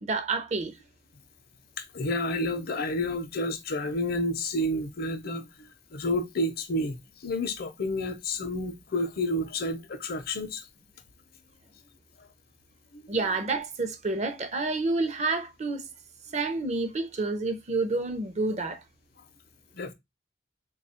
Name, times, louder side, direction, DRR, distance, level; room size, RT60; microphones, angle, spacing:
voice 1, 0.0-0.8 13.1-15.8 16.3-18.8, right 3 dB, 40° right, 0.6 m, -29 dB
voice 2, 1.8-7.0 7.2-10.6 12.9-13.2 19.7-19.9, left 1 dB, 55° left, 0.6 m, -30 dB
3.2 x 2.3 x 4.2 m
head